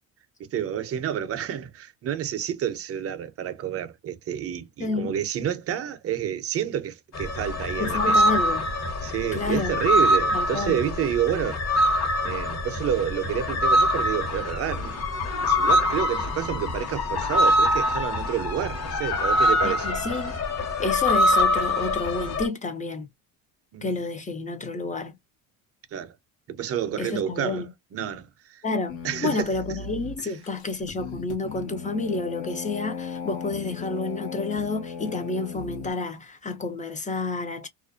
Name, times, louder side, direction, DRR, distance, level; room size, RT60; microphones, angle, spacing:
voice 1, 0.4-8.3 9.0-11.6 12.2-14.9 15.4-19.9 23.7-23.9 25.9-26.1 26.5-28.6 29.0-29.5, right 9 dB, 35° right, 0.6 m, -29 dB
voice 2, 4.8-5.1 7.8-8.7 9.3-9.8 10.3-10.8 19.6-20.4 20.8-23.1 23.8-25.2 27.0-27.7 28.6-37.7, left 3 dB, 20° left, 0.5 m, -30 dB
sound 1, 7.1-22.5, left 1 dB, 40° left, 1.1 m, -24 dB
sound 2, 28.9-35.9, left 5 dB, 85° left, 1.1 m, -37 dB
2.5 x 2.1 x 2.4 m
supercardioid pair, 100°, 40 cm